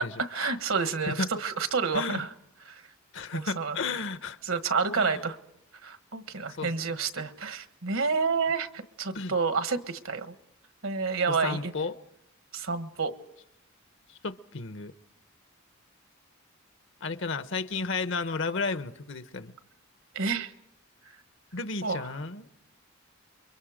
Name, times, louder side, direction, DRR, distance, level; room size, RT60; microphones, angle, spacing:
voice 1, 0.0-2.3 2.7-2.8 3.3-3.8 4.4-5.4 5.8-10.3 10.8-11.7 12.5-13.1 20.1-20.5 21.8-22.0, right 5 dB, 75° right, 1.4 m, -29 dB
voice 2, 3.1-4.4 4.9-5.2 6.6-6.7 9.1-9.3 11.3-11.9 14.1-14.9 17.0-19.5 21.5-22.6, left 3 dB, 65° left, 0.9 m, -33 dB
29.0 x 23.5 x 5.1 m
head